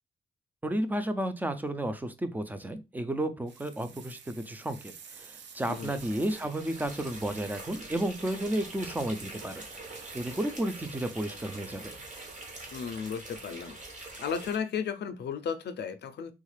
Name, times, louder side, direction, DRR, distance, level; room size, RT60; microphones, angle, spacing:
voice 1, 0.6-9.6 10.1-11.9, right 1 dB, 10° right, 0.4 m, -32 dB
sound 1, 3.5-12.9, right 6 dB, 80° right, 0.6 m, -51 dB
sound 2, 5.1-10.6, right 3 dB, 60° right, 1.2 m, -54 dB
voice 2, 5.7-6.0 12.7-13.8 14.2-16.3, left 6 dB, 70° left, 0.5 m, -34 dB
sound 3, 5.7-14.5, right 2 dB, 40° right, 1.1 m, -45 dB
3.5 x 2.3 x 3.2 m
wide cardioid pair, 130°, 18 cm